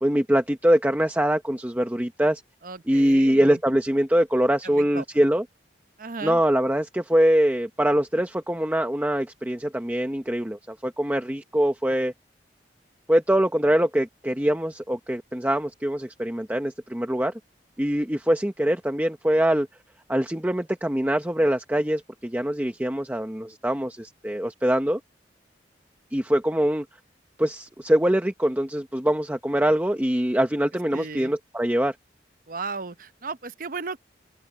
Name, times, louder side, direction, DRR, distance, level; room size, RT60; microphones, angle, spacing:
voice 1, 0.0-2.4 2.9-5.4 6.2-12.1 13.1-17.3 17.8-19.7 20.1-25.0 26.1-26.8 27.4-31.9, equal, 10° right, 0.9 m, -23 dB
voice 2, 2.6-3.6 4.6-5.0 6.0-6.4 30.9-31.3 32.5-34.0, right 4 dB, 50° right, 0.8 m, -35 dB
head